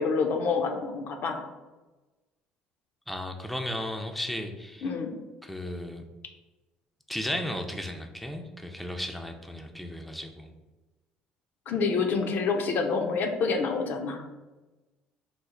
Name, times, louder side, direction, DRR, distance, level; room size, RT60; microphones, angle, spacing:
voice 1, 0.0-1.5 4.8-5.2 11.7-14.2, left 4 dB, 60° left, 4 dB, 0.5 m, -27 dB
voice 2, 3.1-4.9 5.4-6.0 7.1-10.5, left 1 dB, ahead, 4 dB, 0.4 m, -35 dB
3.2 x 2.0 x 3.6 m, 1.2 s
hypercardioid pair, 70°, 4 cm